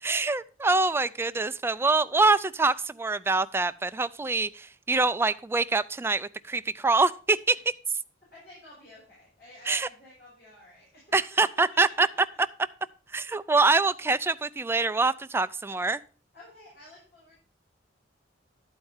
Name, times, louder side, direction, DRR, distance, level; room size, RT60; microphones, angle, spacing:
voice 1, 0.0-7.6 9.7-9.9 11.1-12.1 13.1-16.0, right 3 dB, 15° right, 13 dB, 0.3 m, -25 dB
voice 2, 8.3-11.1 16.3-17.4, left 1 dB, 60° left, -7 dB, 5.7 m, -52 dB
11.5 x 4.5 x 5.6 m, 0.40 s
head